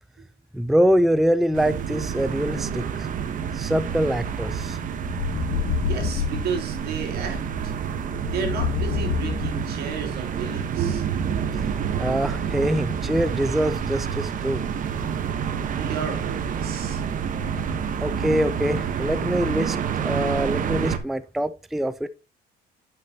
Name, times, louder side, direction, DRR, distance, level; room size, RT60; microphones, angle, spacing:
voice 1, 0.5-3.1 3.5-4.8 11.5-14.7 17.4-22.1, equal, ahead, 0.4 m, -24 dB
sound 1, 1.5-21.0, right 7 dB, 50° right, 1.0 m, -28 dB
sound 2, 5.0-6.6 8.1-9.9, left 6 dB, 80° left, 2.5 m, -27 dB
voice 2, 5.9-7.7 8.3-11.1 15.7-17.0, right 6 dB, 70° right, 2.8 m, -33 dB
10.5 x 6.0 x 2.8 m
cardioid pair, 110°, 17 cm